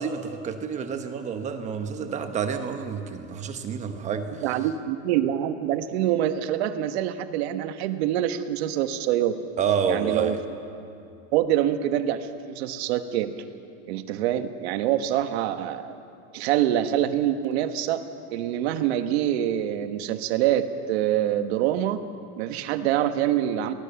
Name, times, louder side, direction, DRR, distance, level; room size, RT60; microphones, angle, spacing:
voice 1, 0.0-4.4 9.6-10.4, right 6 dB, 20° right, 7 dB, 1.1 m, -29 dB
voice 2, 4.4-9.3 9.9-10.4 11.3-13.4 13.9-16.0 16.3-22.0 22.4-23.7, right 11 dB, 70° right, 9 dB, 1.3 m, -25 dB
23.0 x 19.0 x 7.0 m, 2.6 s
supercardioid pair, 175°, 33 cm